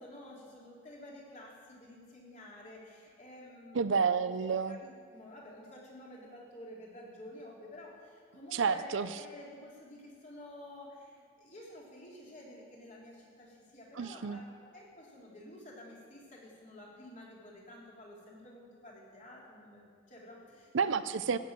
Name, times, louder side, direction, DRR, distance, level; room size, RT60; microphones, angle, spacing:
voice 1, 0.0-3.8 4.4-14.5 14.7-20.9, left 1 dB, 40° left, -4 dB, 3.2 m, -51 dB
voice 2, 3.7-4.8 8.5-9.1 14.0-14.4 20.7-21.4, right 5 dB, 70° right, 13 dB, 0.5 m, -30 dB
14.0 x 6.7 x 8.9 m, 2.1 s
head